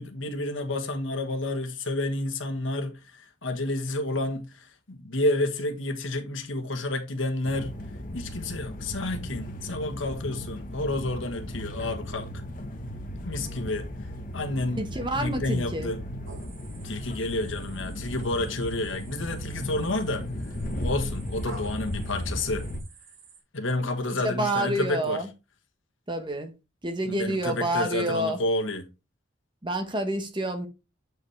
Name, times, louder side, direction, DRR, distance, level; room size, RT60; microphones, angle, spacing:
voice 1, 0.0-7.7 8.1-12.3 13.2-13.9 14.3-14.8 15.1-16.0 16.8-20.2 20.8-22.6 23.5-25.2 27.1-28.8, left 2 dB, 80° left, 1.3 m, -30 dB
sound 1, 7.4-22.8, equal, 45° left, 1.0 m, -36 dB
voice 2, 14.8-15.9 24.0-25.3 26.1-26.5 26.8-28.4 29.6-30.7, right 1 dB, 25° right, 1.2 m, -28 dB
sound 2, 16.2-23.4, right 4 dB, 90° right, 2.2 m, -50 dB
8.0 x 4.9 x 3.3 m
head